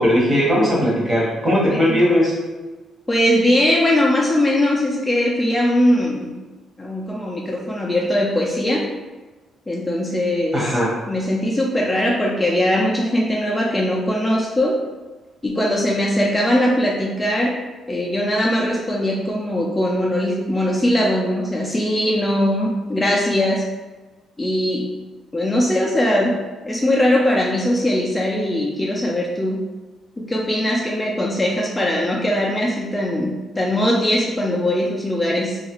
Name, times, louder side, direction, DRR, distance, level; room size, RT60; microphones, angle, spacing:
voice 1, 0.0-2.3 10.5-10.9, equal, 30° right, -4 dB, 1.1 m, -18 dB
voice 2, 1.7-2.0 3.1-6.3 6.8-8.9 9.7-10.8 11.1-14.8 15.4-23.7 24.4-24.9 25.3-29.7 30.2-35.6, left 1 dB, 15° left, -3 dB, 0.4 m, -20 dB
2.8 x 2.4 x 2.9 m, 1.2 s
cardioid pair, 90°, 0 cm